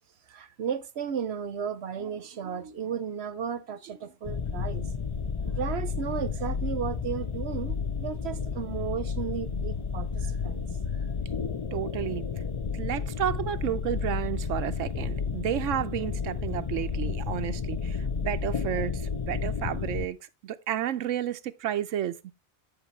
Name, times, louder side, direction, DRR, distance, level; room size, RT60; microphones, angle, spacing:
voice 1, 0.3-4.9 5.5-10.7 10.9-11.0, right 7 dB, 60° right, 1.0 m, -34 dB
sound 1, 4.2-20.1, left 6 dB, 40° left, 0.4 m, -32 dB
voice 2, 11.7-12.3 12.7-20.2 20.4-22.3, right 11 dB, 90° right, 1.0 m, -31 dB
8.8 x 7.8 x 3.1 m
omnidirectional pair, 1.3 m